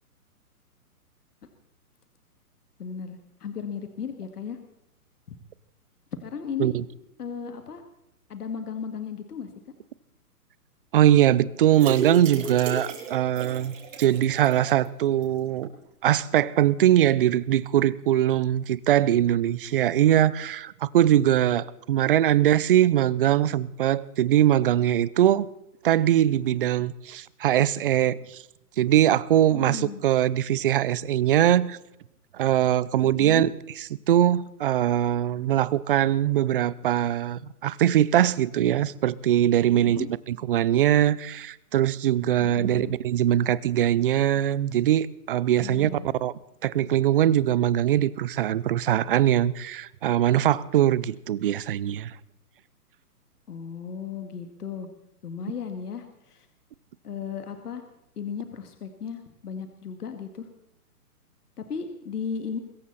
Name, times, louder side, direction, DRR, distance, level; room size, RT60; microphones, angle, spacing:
voice 1, 2.8-4.6 6.1-6.7 7.2-7.8 8.3-9.5 29.5-30.0 33.0-33.5 39.7-40.1 42.4-43.0 45.6-46.1 53.5-54.9 55.2-56.5 57.0-57.9 58.2-60.5 61.6-62.6, left 6 dB, 75° left, 7 dB, 2.3 m, -35 dB
voice 2, 10.9-15.7 16.0-25.5 25.8-28.4 28.8-31.8 32.3-33.5 34.1-45.9 46.2-46.3 46.6-52.1, right 11 dB, 35° right, 20 dB, 0.6 m, -22 dB
sound 1, 11.7-14.9 15.2-15.3 15.6-15.7, right 4 dB, 55° right, 5.1 m, -34 dB
23.0 x 14.5 x 4.2 m, 0.83 s
hypercardioid pair, 150°, 46 cm